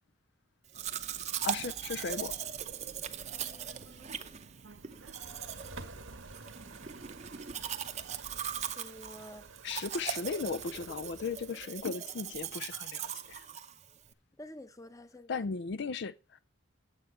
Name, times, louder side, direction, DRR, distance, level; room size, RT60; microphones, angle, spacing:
Domestic sounds home sounds, 0.7-14.1, right 8 dB, 35° right, 0.7 m, -40 dB
Subway metro underground, 0.7-8.7, right 3 dB, 65° right, 0.7 m, -56 dB
voice 1, 1.4-2.3 9.6-13.4 15.3-16.4, left 5 dB, 55° left, 0.4 m, -36 dB
voice 2, 3.3-4.1 8.8-9.5 14.4-15.5, left 1 dB, 15° left, 0.8 m, -50 dB
sound 1, 4.7-11.7, right 3 dB, 80° right, 1.6 m, -51 dB
9.7 x 7.7 x 5.5 m
head